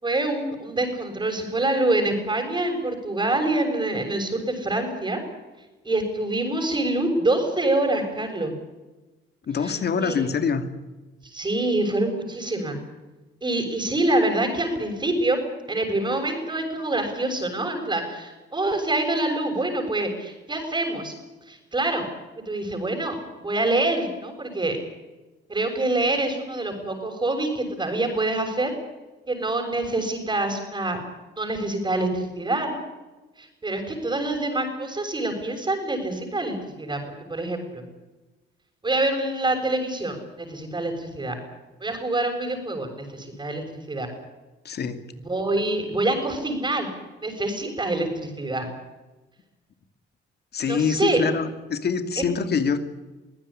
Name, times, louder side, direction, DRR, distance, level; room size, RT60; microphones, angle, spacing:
voice 1, 0.0-5.2 5.8-8.5 9.6-10.3 11.2-12.8 13.4-15.4 15.7-21.1 21.5-22.0 22.4-24.8 25.5-28.7 29.3-31.0 31.4-32.8 33.4-37.8 38.8-41.3 41.8-44.1 45.2-46.9 47.2-48.7 50.6-51.2 52.2-52.3, right 2 dB, 25° right, 1 dB, 6.6 m, -26 dB
voice 2, 9.5-10.6 44.6-45.0 50.5-52.8, left 6 dB, 55° left, 9 dB, 2.7 m, -25 dB
24.5 x 16.0 x 10.0 m, 1.1 s
cardioid pair, 90°, 20 cm